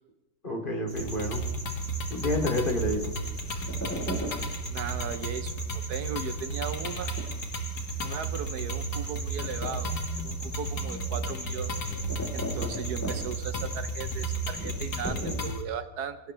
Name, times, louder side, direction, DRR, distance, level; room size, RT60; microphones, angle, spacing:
voice 1, 0.4-1.5 2.1-3.2 12.5-12.8, left 1 dB, 30° left, 1 dB, 3.0 m, -30 dB
sound 1, 0.9-15.5, equal, 10° left, 3.8 m, -38 dB
sound 2, 1.0-15.6, right 2 dB, 70° left, 2.3 m, -34 dB
voice 2, 4.7-7.1 8.0-9.9 10.1-11.7 12.3-16.2, right 7 dB, 70° right, 11 dB, 1.3 m, -37 dB
24.5 x 17.5 x 3.3 m, 1.1 s
omnidirectional pair, 1.8 m